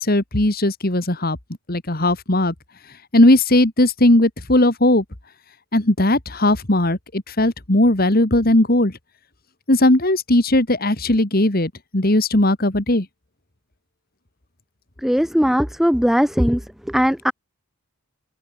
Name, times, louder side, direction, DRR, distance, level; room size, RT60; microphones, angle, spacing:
voice 1, 0.0-1.4 1.7-2.5 3.1-5.0 5.7-8.9 9.7-13.1, left 1 dB, 45° left, 2.1 m, -17 dB
voice 2, 15.0-16.6 16.9-17.3, equal, ahead, 0.7 m, -18 dB
open air
head